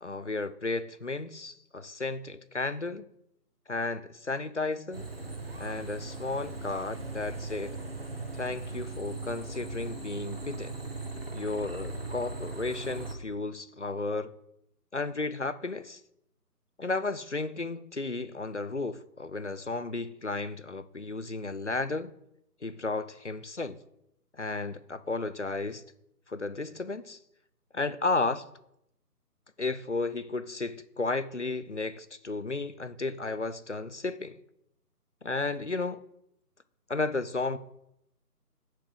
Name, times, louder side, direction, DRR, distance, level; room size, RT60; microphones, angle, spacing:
voice 1, 0.0-3.0 3.7-5.1 5.6-7.8 8.3-10.8 11.3-14.3 14.9-16.0 16.8-22.1 22.6-23.8 24.3-25.8 26.3-27.2 27.7-28.4 29.6-34.4 35.2-36.0 36.9-37.6, left 3 dB, 50° left, 0.5 m, -33 dB
sound 1, 4.9-13.1, right 2 dB, 40° right, 1.1 m, -38 dB
8.9 x 5.4 x 6.2 m
figure-of-eight pair, 175°, 48 cm